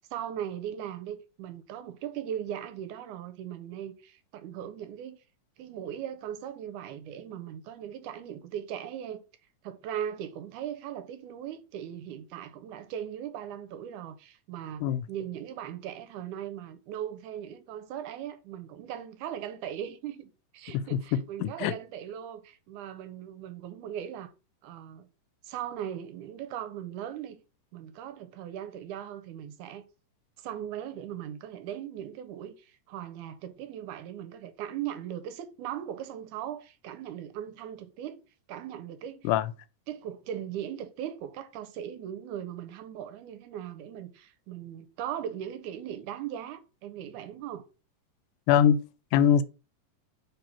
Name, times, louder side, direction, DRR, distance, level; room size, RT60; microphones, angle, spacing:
voice 1, 0.1-5.2 5.6-9.2 9.6-24.3 24.6-25.1 25.4-27.4 27.7-29.9 30.4-38.2 38.5-39.3 39.9-47.6, right 10 dB, 80° right, 2.0 m, -39 dB
voice 2, 21.1-21.7 39.2-39.5 48.5-48.8 49.1-49.4, left 9 dB, 85° left, 2.1 m, -22 dB
4.6 x 4.0 x 5.5 m
omnidirectional pair, 3.7 m